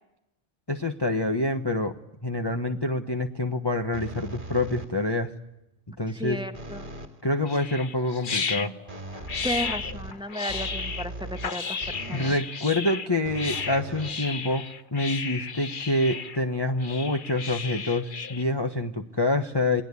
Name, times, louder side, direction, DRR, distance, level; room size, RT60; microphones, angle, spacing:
voice 1, 0.7-1.9 2.2-5.3 6.0-6.4 7.2-8.8 12.1-14.7 14.9-19.8, left 2 dB, 20° left, 4 dB, 1.2 m, -26 dB
sound 1, 3.9-5.2 6.5-7.2 8.9-12.5 13.2-14.7, right 1 dB, 40° right, 2.4 m, -39 dB
voice 2, 6.2-6.9 9.4-11.8 12.1-12.3, left 1 dB, 5° right, 7 dB, 1.6 m, -33 dB
sound 2, 7.5-18.4, left 5 dB, 45° left, 1.2 m, -34 dB
28.5 x 20.0 x 8.4 m, 0.88 s
omnidirectional pair, 1.2 m